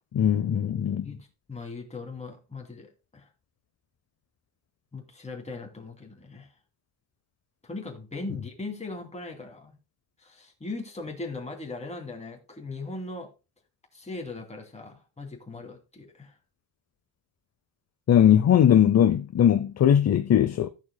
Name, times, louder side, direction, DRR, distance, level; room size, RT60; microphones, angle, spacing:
voice 1, 0.1-1.1 18.1-20.7, left 9 dB, 35° left, 0.5 m, -20 dB
voice 2, 1.0-3.3 4.9-6.5 7.6-9.8 10.2-13.3 13.9-16.4, left 3 dB, 15° left, 2.7 m, -39 dB
14.5 x 7.4 x 2.2 m
cardioid pair, 130°, 48 cm